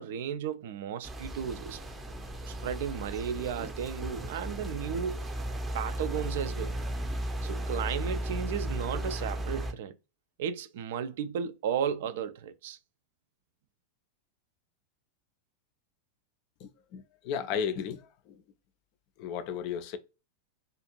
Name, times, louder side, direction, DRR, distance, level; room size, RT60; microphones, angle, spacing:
voice 1, 0.0-1.8 2.5-5.3 5.7-6.8 7.4-9.9 10.4-12.8, right 8 dB, 55° right, 0.3 m, -34 dB
sound 1, 1.0-9.7, right 1 dB, 10° right, 0.6 m, -35 dB
voice 2, 16.6-18.1 19.2-20.0, left 7 dB, 45° left, 0.4 m, -34 dB
2.5 x 2.5 x 2.8 m
figure-of-eight pair, 90°, 0 cm